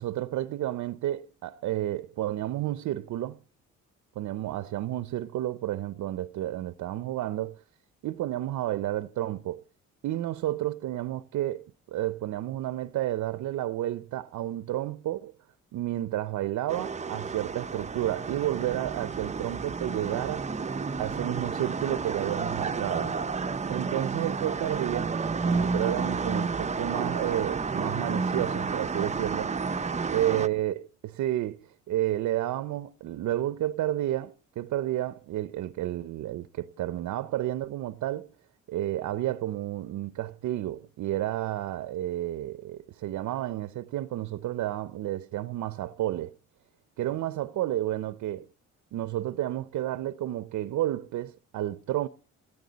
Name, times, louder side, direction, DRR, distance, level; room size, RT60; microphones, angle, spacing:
voice 1, 0.0-3.4 4.2-7.6 8.0-9.6 10.0-15.3 15.7-20.5 20.9-23.1 23.7-25.2 25.4-29.5 30.1-38.3 38.7-46.3 47.0-48.5 48.9-52.1, right 13 dB, 75° right, 0.7 m, -31 dB
sound 1, 16.7-30.5, right 4 dB, 25° right, 0.7 m, -31 dB
17.5 x 14.0 x 4.0 m
cardioid pair, 90°, 30 cm